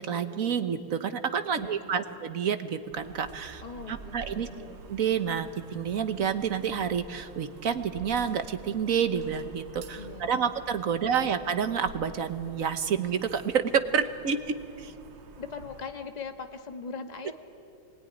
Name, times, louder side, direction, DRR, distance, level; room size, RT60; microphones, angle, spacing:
voice 1, 0.0-3.6 3.9-4.5 4.9-14.9, right 7 dB, 50° right, 10 dB, 1.1 m, -29 dB
voice 2, 1.5-2.2 3.6-4.8 10.0-10.5 10.9-11.3 15.4-17.3, left 5 dB, 25° left, 6 dB, 1.2 m, -41 dB
sound 1, 2.9-15.9, right 4 dB, 85° right, 2.3 m, -48 dB
26.0 x 21.0 x 10.0 m, 2.6 s
omnidirectional pair, 2.3 m